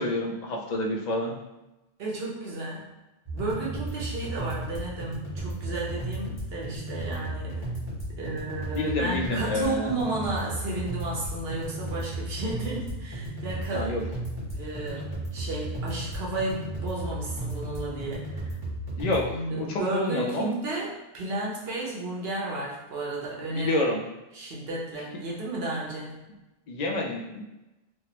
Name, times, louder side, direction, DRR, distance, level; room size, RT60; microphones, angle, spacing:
voice 1, 0.0-1.4 8.8-9.9 13.7-14.0 19.0-20.5 23.5-24.0 26.7-27.4, left 2 dB, 55° left, 0 dB, 0.5 m, -28 dB
voice 2, 2.0-2.9 3.3-7.7 8.2-13.9 14.5-18.5 19.3-23.8 24.3-26.2, right 2 dB, 75° right, -4 dB, 1.0 m, -33 dB
sound 1, 3.2-19.2, right 1 dB, 25° right, 1.1 m, -34 dB
3.4 x 2.0 x 2.8 m, 1.0 s
omnidirectional pair, 1.0 m